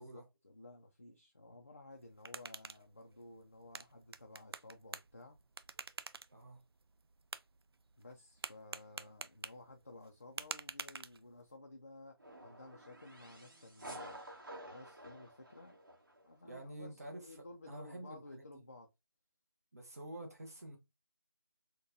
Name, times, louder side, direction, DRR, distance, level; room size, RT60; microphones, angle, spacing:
voice 1, 0.0-5.4 8.0-14.2 14.7-15.8 16.2-18.9, left 2 dB, 35° left, 0.3 m, -55 dB
sound 1, 1.9-11.6, right 4 dB, 80° right, 0.4 m, -50 dB
sound 2, 12.2-16.3, right 1 dB, 55° right, 1.3 m, -51 dB
voice 2, 16.4-17.3 17.7-18.4 19.7-20.8, right 1 dB, 40° right, 0.8 m, -48 dB
3.8 x 2.2 x 2.5 m
figure-of-eight pair, 175°, 13 cm